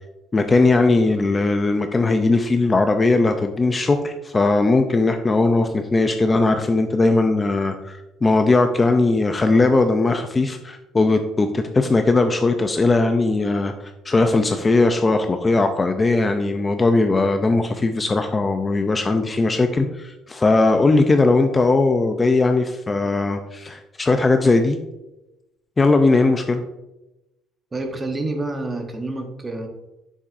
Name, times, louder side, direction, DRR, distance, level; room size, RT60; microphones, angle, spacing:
voice 1, 0.3-13.7 14.1-24.8 25.8-26.6, left 3 dB, 20° left, 6 dB, 0.4 m, -19 dB
voice 2, 27.7-29.7, right 2 dB, 20° right, 4 dB, 1.0 m, -28 dB
7.3 x 7.0 x 2.5 m, 0.95 s
cardioid pair, 145°, 0 cm